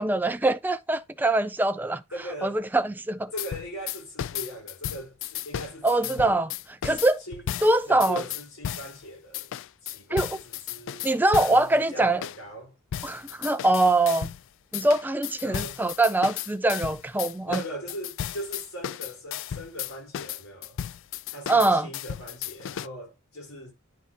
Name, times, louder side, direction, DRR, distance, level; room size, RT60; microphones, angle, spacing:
voice 1, 0.0-2.0 2.4-3.3 5.8-6.5 6.8-7.2 7.6-8.2 10.1-10.4 11.0-12.2 13.0-14.3 14.7-17.6 21.5-21.9, right 2 dB, 10° right, 0.4 m, -23 dB
voice 2, 2.1-2.6 3.3-6.4 6.9-7.5 7.8-9.5 9.8-12.8 15.4-15.8 17.4-20.8 21.3-23.7, equal, 90° left, 4.4 m, -40 dB
sound 1, 3.4-9.0 9.3-11.7 12.2-12.4 12.9-14.4 14.7-22.9, left 10 dB, 65° left, 0.3 m, -34 dB
10.5 x 5.4 x 2.9 m
head